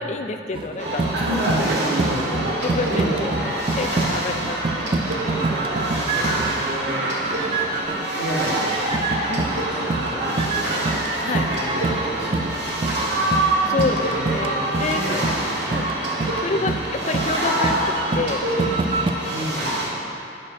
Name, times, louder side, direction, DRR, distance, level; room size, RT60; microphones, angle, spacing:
voice 1, 0.0-1.4 2.3-3.3 3.8-5.0 9.3-9.5 11.2-11.5 13.7-15.4 15.7-15.9 16.4-18.5, left 3 dB, 40° left, 6 dB, 0.4 m, -28 dB
sound 1, 0.5-8.1 8.4-19.1, right 3 dB, 30° right, 0.3 m, -27 dB
sound 2, 0.8-19.9, right 1 dB, 85° right, 1.9 m, -26 dB
voice 2, 1.1-3.3 4.0-4.3 5.0-5.5 5.9-7.1 8.0-8.7 9.5-10.8 11.1-15.2 15.4-15.8 16.5-16.8 18.9-19.0 19.3-19.8, equal, 65° right, -7 dB, 2.0 m, -31 dB
9.2 x 4.3 x 6.1 m, 2.7 s
head